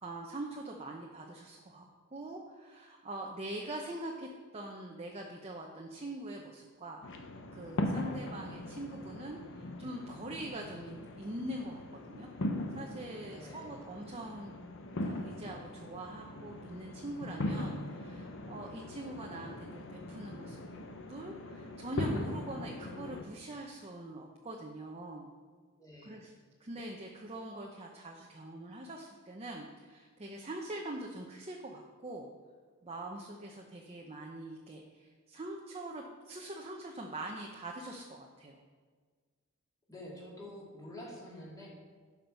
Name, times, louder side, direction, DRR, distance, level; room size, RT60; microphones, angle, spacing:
voice 1, 0.0-7.0 7.5-12.3 12.7-14.5 15.0-20.6 21.1-25.3 26.0-26.3 26.6-32.3 32.8-38.5, right 1 dB, 30° right, 0 dB, 0.8 m, -43 dB
sound 1, 7.0-23.2, left 1 dB, 65° left, 0.9 m, -40 dB
voice 2, 13.3-13.7 25.7-26.2 39.9-41.7, left 1 dB, 15° left, -5 dB, 2.7 m, -48 dB
11.5 x 6.0 x 5.4 m, 1.6 s
head